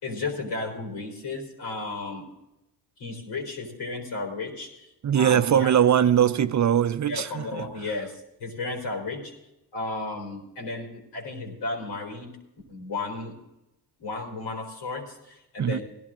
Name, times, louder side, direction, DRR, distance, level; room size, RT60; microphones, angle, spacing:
voice 1, 0.0-2.3 3.0-4.9 5.1-5.7 7.0-9.3 9.7-12.3 12.7-13.3 14.0-15.8, left 3 dB, 70° left, 4.3 m, -34 dB
voice 2, 5.0-7.7 15.6-15.8, right 9 dB, 45° right, 0.5 m, -21 dB
17.0 x 12.0 x 3.8 m
cardioid pair, 75°, 42 cm